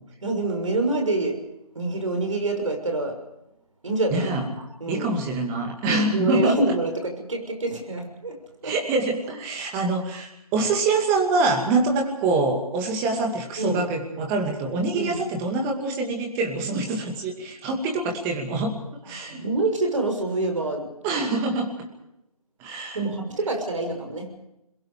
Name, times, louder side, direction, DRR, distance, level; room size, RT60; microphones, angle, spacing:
voice 1, 0.2-1.4 1.7-3.2 3.8-4.4 4.8-5.2 5.8-8.4 8.6-8.7 13.6-13.9 14.9-15.2 19.3-20.9 22.9-24.3, right 2 dB, 60° right, 4 dB, 6.4 m, -26 dB
voice 2, 4.1-4.5 4.9-6.7 8.6-18.8 19.1-19.4 21.0-21.9 22.6-23.0, right 3 dB, 10° right, 2 dB, 2.4 m, -25 dB
27.0 x 22.0 x 4.9 m, 0.87 s
figure-of-eight pair, 155°, 19 cm